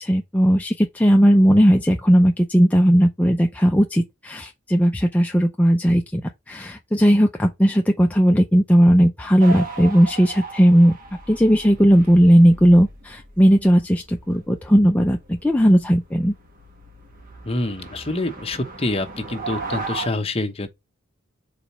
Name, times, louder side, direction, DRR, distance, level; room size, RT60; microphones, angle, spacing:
voice 1, 0.0-6.2 6.5-11.0 11.3-16.3, equal, 5° left, 0.5 m, -16 dB
sound 1, 9.4-20.1, right 3 dB, 45° right, 1.5 m, -37 dB
voice 2, 17.4-20.7, left 2 dB, 30° left, 1.0 m, -26 dB
4.9 x 4.1 x 5.8 m
head